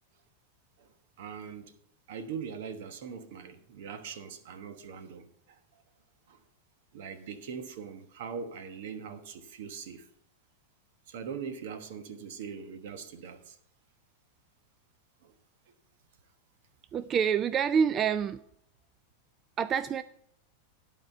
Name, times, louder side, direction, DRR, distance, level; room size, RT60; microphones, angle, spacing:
voice 1, 1.2-1.7 2.1-5.8 6.3-6.4 6.9-10.1 11.1-13.6 15.2-15.3, right 6 dB, 70° right, 1.2 m, -41 dB
voice 2, 16.9-18.4 19.6-20.0, right 7 dB, 30° right, 0.3 m, -27 dB
12.0 x 4.4 x 6.7 m
supercardioid pair, 130°, 0 cm